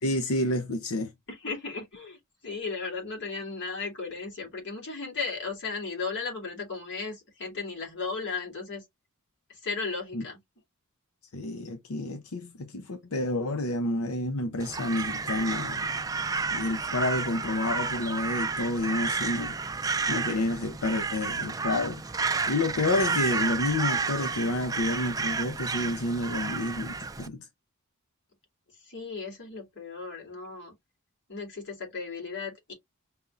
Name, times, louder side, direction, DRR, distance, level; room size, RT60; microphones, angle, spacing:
voice 1, 0.0-1.1 10.1-10.2 11.3-15.9 16.5-22.0 22.5-27.5, left 2 dB, 85° left, 0.7 m, -29 dB
voice 2, 1.3-8.8 9.5-10.4 28.8-30.7 31.3-32.7, left 4 dB, 55° left, 3.0 m, -35 dB
Crow, 14.6-27.3, right 4 dB, 15° right, 0.4 m, -31 dB
5.6 x 3.5 x 2.5 m
head